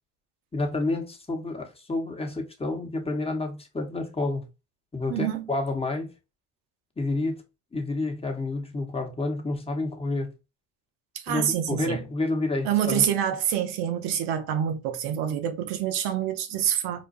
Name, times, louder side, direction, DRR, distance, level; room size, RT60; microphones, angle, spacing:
voice 1, 0.5-4.5 4.9-6.1 7.0-7.4 7.7-10.3 11.3-13.0, left 2 dB, 15° left, 1.1 m, -29 dB
voice 2, 5.1-5.5 11.1-12.0 12.6-17.1, right 9 dB, 80° right, 0.8 m, -27 dB
5.1 x 2.3 x 2.5 m
supercardioid pair, 80°, 40 cm